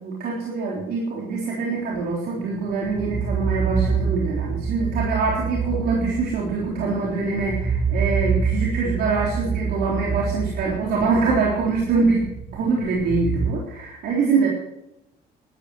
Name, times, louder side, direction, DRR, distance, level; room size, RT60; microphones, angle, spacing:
voice 1, 0.0-12.3 12.5-14.5, right 4 dB, 70° right, -3 dB, 3.7 m, -24 dB
sound 1, 2.4-13.5, right 5 dB, 40° right, 1.4 m, -26 dB
13.0 x 11.0 x 7.9 m, 0.85 s
cardioid pair, 110°, 17 cm